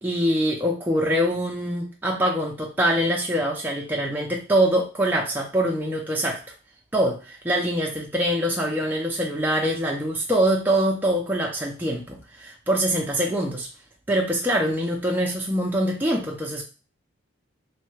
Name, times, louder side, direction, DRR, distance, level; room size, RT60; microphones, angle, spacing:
voice 1, 0.0-6.4 6.9-13.7 14.1-16.6, equal, 10° right, -2 dB, 0.4 m, -24 dB
3.1 x 2.2 x 3.1 m, 0.32 s
head